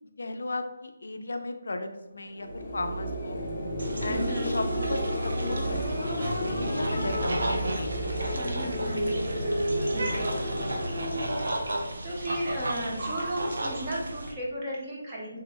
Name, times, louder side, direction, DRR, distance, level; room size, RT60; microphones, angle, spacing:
voice 1, 0.2-3.4 4.0-8.4, left 2 dB, 65° left, 6 dB, 0.3 m, -36 dB
sound 1, 2.3-11.6, equal, 30° left, 0.6 m, -31 dB
sound 2, 3.8-14.3, right 1 dB, 60° right, 0.6 m, -34 dB
voice 2, 4.1-4.5 8.3-10.5 12.0-15.4, right 1 dB, 15° right, -5 dB, 0.5 m, -35 dB
3.4 x 2.0 x 3.3 m, 1.1 s
hypercardioid pair, 180°, 0 cm